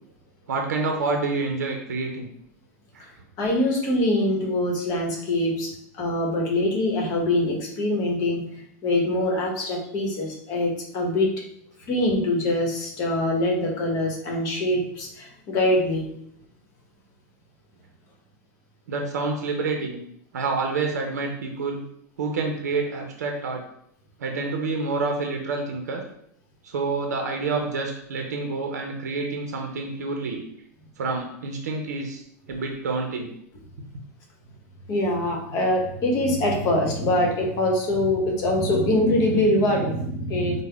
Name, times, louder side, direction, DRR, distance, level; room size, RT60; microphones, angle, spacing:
voice 1, 0.5-2.3 2.9-3.1 18.9-20.0 20.3-21.8 22.2-23.6 24.2-26.0 26.6-30.4 31.0-32.2 32.5-33.3, right 3 dB, 90° right, 2 dB, 0.5 m, -28 dB
voice 2, 3.4-11.4 11.9-16.1 34.9-40.6, left 1 dB, 45° left, 0 dB, 0.9 m, -24 dB
3.4 x 2.0 x 3.4 m, 0.72 s
hypercardioid pair, 110°, 9 cm